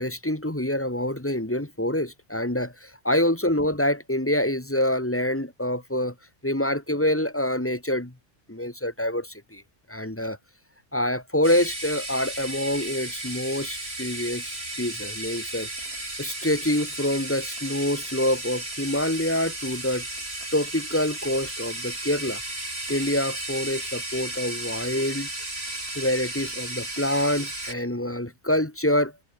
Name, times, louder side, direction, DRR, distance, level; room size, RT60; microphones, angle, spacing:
voice 1, 0.0-6.1 6.4-8.1 8.5-9.6 9.9-10.4 10.9-15.7 16.2-20.0 20.5-22.4 22.9-25.3 26.0-29.1, left 1 dB, 10° left, 1.8 m, -26 dB
sound 1, 11.4-27.7, right 1 dB, 55° right, 6.6 m, -34 dB
omnidirectional pair, 1.3 m